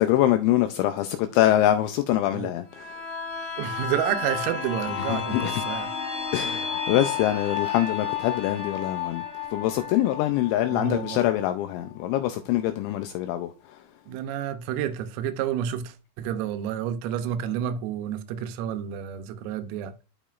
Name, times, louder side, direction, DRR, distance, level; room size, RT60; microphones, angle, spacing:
voice 1, 0.0-2.9 5.1-5.5 6.3-9.2 9.5-13.5, left 13 dB, 85° left, 2.6 m, -24 dB
sound 1, 2.7-12.3 12.7-12.8, left 6 dB, 45° left, 1.2 m, -32 dB
voice 2, 3.6-5.9 10.7-11.3 14.1-19.9, right 10 dB, 90° right, 3.4 m, -30 dB
13.0 x 5.0 x 2.4 m
omnidirectional pair, 5.8 m